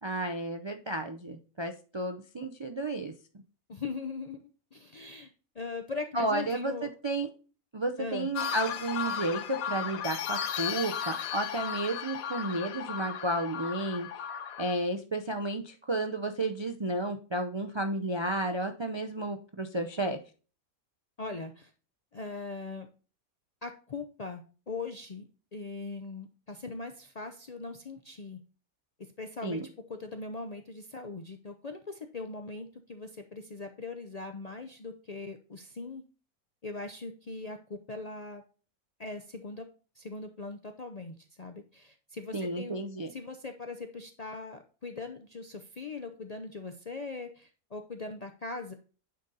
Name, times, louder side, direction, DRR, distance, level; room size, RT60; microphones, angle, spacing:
voice 1, 0.0-3.1 6.1-7.3 7.7-14.1 14.6-20.2 29.4-29.6 42.3-43.1, right 1 dB, 50° right, 5 dB, 0.3 m, -32 dB
voice 2, 3.7-4.4 4.7-6.9 8.0-8.3 21.2-21.7 22.1-22.9 23.6-28.4 29.0-36.0 36.6-38.4 39.0-39.7 40.0-42.8 43.1-48.7, left 3 dB, 50° left, 5 dB, 0.5 m, -40 dB
sound 1, 8.3-14.7, left 8 dB, 80° left, 1.2 m, -35 dB
9.4 x 3.9 x 4.0 m, 0.36 s
omnidirectional pair, 1.5 m